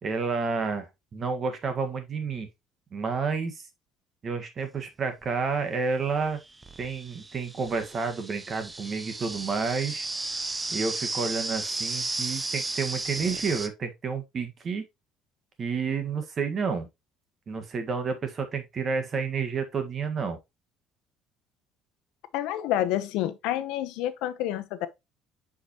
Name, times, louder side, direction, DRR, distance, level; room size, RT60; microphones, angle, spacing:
voice 1, 0.0-2.5 2.9-3.6 4.2-6.4 6.8-10.1 10.7-14.8 15.6-16.9 17.5-20.4, right 5 dB, 35° right, 1.5 m, -30 dB
sound 1, 5.2-5.3 6.2-13.7, right 3 dB, 15° right, 0.6 m, -34 dB
voice 2, 22.3-24.9, left 13 dB, 80° left, 0.8 m, -28 dB
7.8 x 5.0 x 2.9 m
cardioid pair, 140°, 0 cm